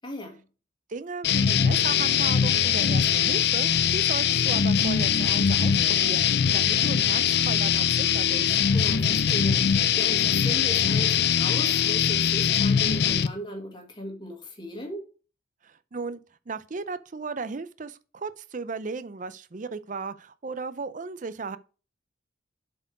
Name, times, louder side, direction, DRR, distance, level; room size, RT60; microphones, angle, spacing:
voice 1, 0.0-0.4 8.7-15.0, left 1 dB, 25° left, 1.8 m, -37 dB
voice 2, 0.9-8.5 15.6-16.2 16.5-21.6, right 4 dB, 40° right, 0.5 m, -36 dB
sound 1, 1.2-13.3, left 8 dB, 55° left, 0.5 m, -22 dB
7.4 x 4.6 x 4.6 m
head